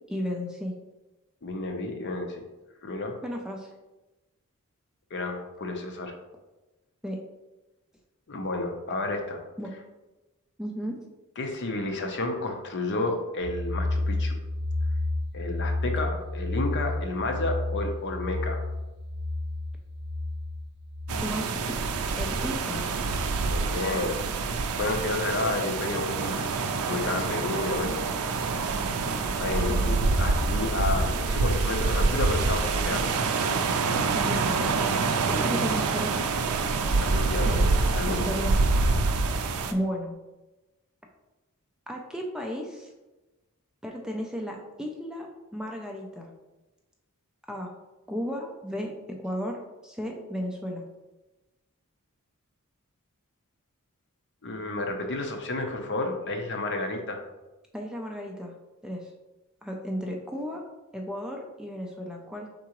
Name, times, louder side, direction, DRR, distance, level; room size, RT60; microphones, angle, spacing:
voice 1, 0.1-0.7 3.2-3.7 7.0-7.2 9.6-9.7 10.6-11.0 21.2-21.6 22.2-22.9 29.7-29.9 34.1-34.6 35.2-36.3 37.4-37.6 38.1-38.5 39.7-40.1 41.9-42.9 43.8-46.3 47.5-47.7 48.1-50.8 57.7-58.5 58.8-59.1 59.6-60.6 60.9-62.5, equal, 5° right, 1 dB, 0.4 m, -34 dB
voice 2, 1.4-2.4 2.8-3.2 5.1-6.1 8.3-9.4 11.4-14.4 15.3-18.7 23.5-24.2 24.5-26.5 26.9-28.0 29.4-33.1 33.5-33.6 37.0-37.7 37.9-38.3 54.4-57.2, left 2 dB, 55° left, 4 dB, 0.6 m, -31 dB
sound 1, 13.4-21.2, left 2 dB, 20° left, 1.1 m, -31 dB
sound 2, 21.1-39.7, right 3 dB, 75° right, 0.4 m, -26 dB
4.7 x 3.8 x 2.9 m, 1.1 s
head